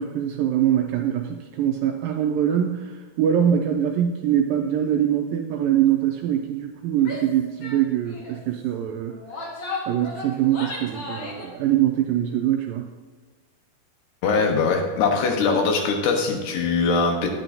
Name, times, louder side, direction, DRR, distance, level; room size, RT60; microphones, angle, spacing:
voice 1, 0.0-9.2 9.9-12.9, right 10 dB, 85° right, 3 dB, 2.1 m, -23 dB
Female speech woman speaking / Yell, 7.0-7.3 7.6-7.8 8.1-8.4 9.1-11.5, left 2 dB, 55° left, 1.6 m, -34 dB
voice 2, 14.2-17.3, left 4 dB, 90° left, 2 dB, 3.3 m, -21 dB
10.5 x 9.9 x 2.7 m, 1.4 s
omnidirectional pair, 4.6 m